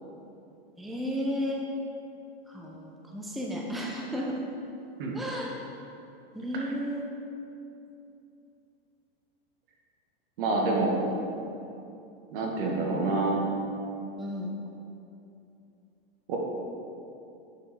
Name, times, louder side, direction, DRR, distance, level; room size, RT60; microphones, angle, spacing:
voice 1, 0.8-1.6 2.5-4.4 5.1-5.6 6.3-7.1 14.2-14.5, equal, ahead, -2 dB, 0.8 m, -33 dB
voice 2, 10.4-11.0 12.3-13.4 16.3-16.4, right 3 dB, 60° right, -1 dB, 2.0 m, -27 dB
9.3 x 6.8 x 4.5 m, 2.7 s
hypercardioid pair, 125°, 31 cm